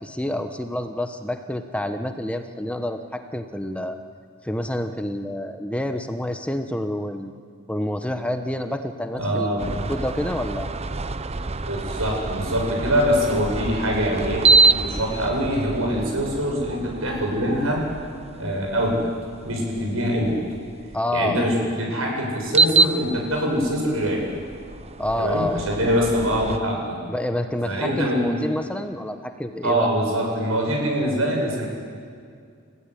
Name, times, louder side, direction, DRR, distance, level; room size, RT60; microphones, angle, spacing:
voice 1, 0.0-4.0 4.4-7.3 7.7-9.5 9.9-10.7 20.9-21.5 25.0-25.8 27.1-29.9, left 1 dB, 5° left, 7 dB, 1.1 m, -28 dB
voice 2, 9.1-9.7 11.3-11.4 11.7-17.8 18.3-19.1 19.4-20.4 21.1-24.2 25.2-27.0 27.7-28.4 29.6-31.7, equal, 90° right, 0 dB, 7.8 m, -24 dB
sound 1, 9.6-21.0 22.4-26.6, right 4 dB, 30° right, 0.8 m, -26 dB
30.0 x 16.0 x 9.9 m, 2.2 s
head